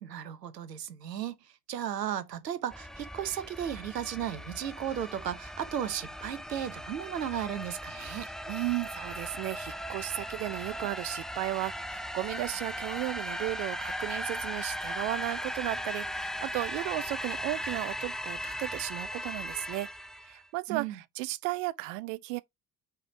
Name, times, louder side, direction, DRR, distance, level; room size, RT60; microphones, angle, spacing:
voice 1, 0.0-8.3 20.7-21.0, right 10 dB, 85° right, 0.8 m, -35 dB
sound 1, 2.7-20.4, equal, ahead, 0.5 m, -38 dB
voice 2, 7.9-19.9 20.2-22.4, right 20 dB, 60° right, 0.5 m, -35 dB
4.9 x 4.5 x 5.6 m
figure-of-eight pair, 60°, 48 cm